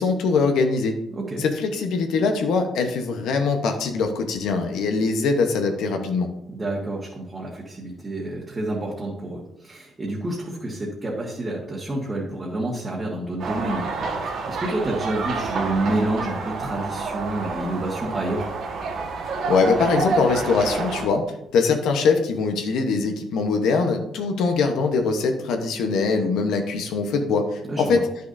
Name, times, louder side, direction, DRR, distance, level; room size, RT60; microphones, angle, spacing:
voice 1, 0.0-1.0 1.4-6.3 19.5-21.2 21.5-28.1, left 4 dB, 80° left, 5 dB, 0.9 m, -22 dB
voice 2, 1.1-1.4 6.5-18.5 27.7-28.0, right 2 dB, 20° right, -5 dB, 1.4 m, -29 dB
sound 1, 13.4-21.1, right 4 dB, 65° right, 1.5 m, -28 dB
10.0 x 6.6 x 2.6 m, 0.85 s
cardioid pair, 135°, 0 cm